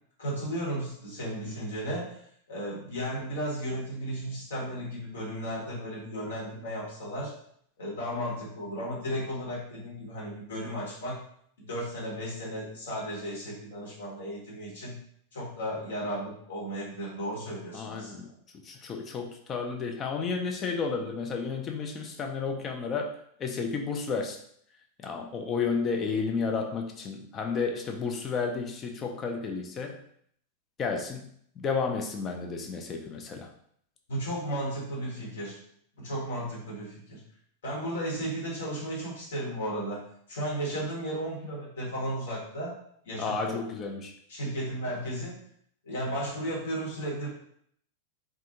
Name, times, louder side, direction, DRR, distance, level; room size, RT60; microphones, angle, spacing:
voice 1, 0.2-2.2 2.5-7.3 7.8-11.2 11.6-15.0 15.3-18.1 34.1-35.6 36.0-37.2 37.6-42.8 43.0-43.6 44.3-45.5 45.8-47.3, equal, 60° left, -5 dB, 1.1 m, -34 dB
voice 2, 17.7-24.4 25.0-30.0 30.8-31.3 31.6-33.5 43.2-44.1, left 5 dB, 25° left, 2 dB, 0.4 m, -32 dB
2.4 x 2.2 x 2.8 m, 0.65 s
figure-of-eight pair, 90°, 0 cm